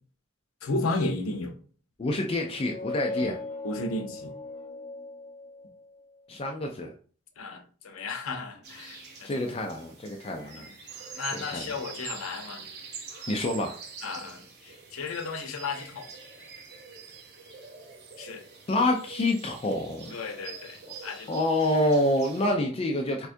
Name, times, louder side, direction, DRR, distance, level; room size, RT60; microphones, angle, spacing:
voice 1, 0.6-1.6 3.2-3.3 3.6-4.3 7.4-9.3 11.1-12.6 14.0-14.4 14.9-16.1 18.2-18.4 20.1-21.3, left 3 dB, 75° left, 0.6 m, -33 dB
voice 2, 2.0-3.4 6.3-6.9 9.2-10.7 11.3-11.8 13.3-13.8 18.7-20.1 21.3-23.3, left 1 dB, 25° left, 0.4 m, -27 dB
sound 1, 2.5-6.0, left 2 dB, 45° left, 0.9 m, -38 dB
sound 2, 8.6-22.5, right 5 dB, 50° right, 0.6 m, -44 dB
4.3 x 2.3 x 2.5 m
head